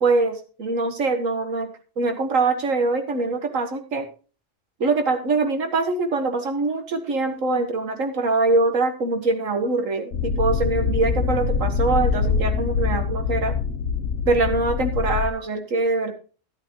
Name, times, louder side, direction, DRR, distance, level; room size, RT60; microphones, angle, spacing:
voice 1, 0.0-1.7 2.0-4.1 4.8-13.5 14.3-16.1, right 3 dB, 85° right, 6 dB, 2.0 m, -23 dB
sound 1, 10.1-15.3, left 5 dB, 70° left, 1.2 m, -24 dB
12.0 x 11.5 x 3.1 m, 0.36 s
omnidirectional pair, 1.3 m